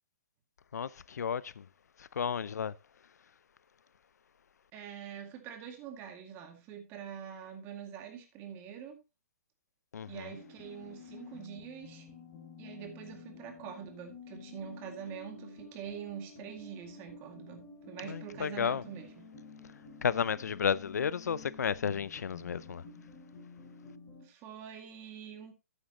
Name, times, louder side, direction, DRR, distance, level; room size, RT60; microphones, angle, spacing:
voice 1, 0.7-1.7 2.0-2.8 9.9-10.3 18.0-18.8 20.0-22.8, left 7 dB, 90° left, 0.5 m, -33 dB
voice 2, 4.7-9.0 10.1-12.1 12.6-19.3 24.2-25.5, right 8 dB, 25° right, 2.1 m, -45 dB
sound 1, 10.3-24.3, left 4 dB, 25° left, 5.3 m, -51 dB
11.5 x 9.0 x 2.9 m
hypercardioid pair, 155°, 9 cm